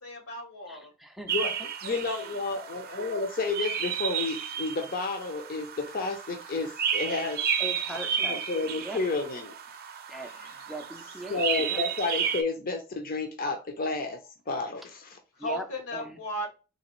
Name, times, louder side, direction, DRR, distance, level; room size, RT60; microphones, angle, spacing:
voice 1, 0.0-0.9 1.8-2.0 15.4-16.5, equal, 85° left, 2 dB, 1.7 m, -36 dB
voice 2, 0.7-1.3 7.6-8.4 8.8-9.0 10.1-10.3 10.7-11.8 15.4-15.7 15.9-16.2, right 1 dB, ahead, 4 dB, 0.4 m, -39 dB
sound 1, 1.3-12.4, right 8 dB, 45° right, 0.6 m, -33 dB
voice 3, 1.8-7.4 7.9-9.5 10.2-10.6 11.3-14.2 14.5-15.2, left 3 dB, 45° left, 4 dB, 0.6 m, -31 dB
3.9 x 2.8 x 3.0 m, 0.31 s
head